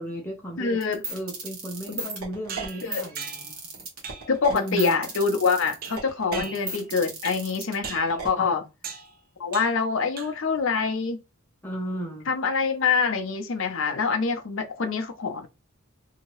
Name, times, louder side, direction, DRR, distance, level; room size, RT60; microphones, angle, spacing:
voice 1, 0.0-0.8 1.1-3.5 4.5-5.0 6.3-6.5 8.4-8.5 11.6-12.3, equal, 10° left, 0.6 m, -35 dB
voice 2, 0.6-1.1 1.9-2.0 2.8-3.1 4.3-8.6 9.4-11.2 12.3-15.5, left 5 dB, 60° left, 0.5 m, -25 dB
sound 1, 0.8-8.3, right 4 dB, 85° right, 1.2 m, -35 dB
sound 2, 2.5-3.6 4.0-4.4 4.8-5.1 5.8-6.9 7.2-7.5 7.8-8.2 8.8-9.1 9.5-9.9 10.2-10.6, right 6 dB, 40° right, 0.4 m, -39 dB
2.8 x 2.7 x 3.0 m
head